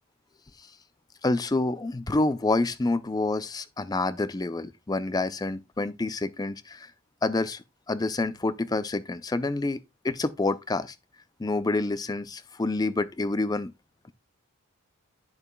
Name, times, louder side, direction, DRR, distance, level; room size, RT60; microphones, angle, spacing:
voice 1, 1.2-6.9 7.2-10.9 11.4-13.7, left 2 dB, 15° left, 0.4 m, -28 dB
10.5 x 6.8 x 2.3 m
head